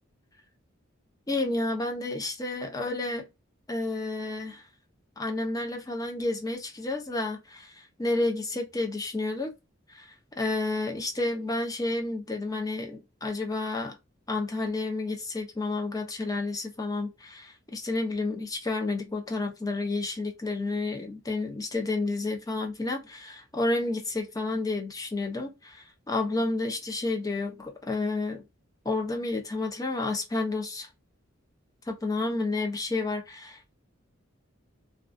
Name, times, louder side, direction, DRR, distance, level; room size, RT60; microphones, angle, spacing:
voice 1, 1.3-3.3 3.7-4.7 5.2-9.5 9.9-14.0 14.3-28.4 28.8-30.9 31.9-33.7, left 2 dB, 20° left, 0.5 m, -30 dB
2.3 x 2.3 x 2.4 m
head